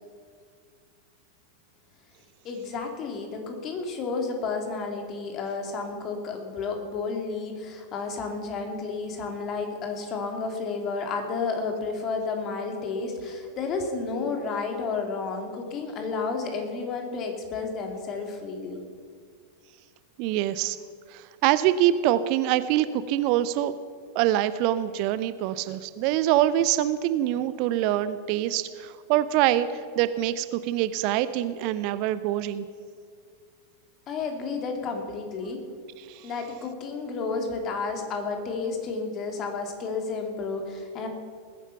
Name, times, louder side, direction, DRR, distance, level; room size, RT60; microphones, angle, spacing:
voice 1, 2.4-18.8 34.1-35.6 36.2-41.1, left 4 dB, 35° left, 4 dB, 2.8 m, -31 dB
voice 2, 20.2-20.8 21.1-23.7 24.1-32.7 36.0-36.3, right 12 dB, 45° right, 14 dB, 0.6 m, -25 dB
20.0 x 10.5 x 5.8 m, 2.1 s
figure-of-eight pair, 90°, 0 cm